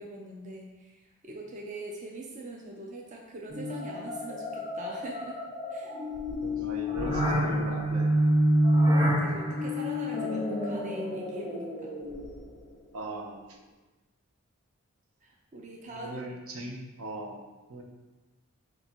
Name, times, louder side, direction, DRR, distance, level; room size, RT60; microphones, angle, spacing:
voice 1, 0.0-5.4 5.7-5.9 8.9-11.9 15.2-16.2 16.6-16.7, right 2 dB, 35° right, -1 dB, 0.4 m, -43 dB
sound 1, 3.5-12.6, equal, 20° right, 0.9 m, -28 dB
voice 2, 6.4-8.1 12.9-13.6 15.9-17.4 17.7-17.8, right 1 dB, 75° right, 1 dB, 0.7 m, -39 dB
4.5 x 2.7 x 4.3 m, 1.2 s
head